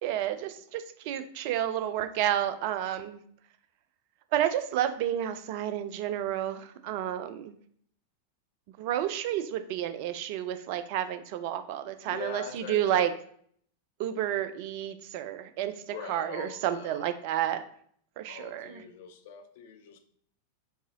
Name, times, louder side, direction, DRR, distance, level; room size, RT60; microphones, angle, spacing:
voice 1, 0.0-3.2 4.3-7.6 8.8-13.1 14.0-17.6 18.2-18.8, right 11 dB, 45° right, 10 dB, 0.4 m, -31 dB
voice 2, 12.1-13.1 15.9-17.0 18.3-20.0, left 7 dB, 55° left, 7 dB, 0.5 m, -42 dB
4.6 x 2.8 x 2.9 m, 0.62 s
figure-of-eight pair, 90°, 0 cm